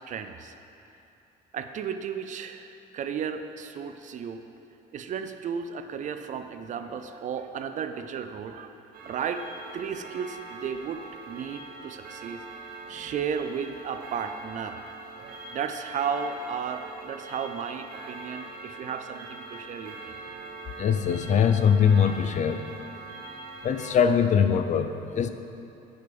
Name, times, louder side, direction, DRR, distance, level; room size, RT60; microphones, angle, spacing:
voice 1, 0.1-0.5 1.5-4.4 4.9-8.8 9.0-9.4 9.7-12.4 12.8-14.8 15.2-20.2, right 7 dB, 45° right, 8 dB, 0.4 m, -34 dB
Clock, 8.9-23.9, right 2 dB, 65° right, 1.1 m, -43 dB
voice 2, 20.8-22.6 23.6-25.3, left 7 dB, 45° left, 9 dB, 0.4 m, -22 dB
6.5 x 5.2 x 6.0 m, 2.7 s
cardioid pair, 110°, 17 cm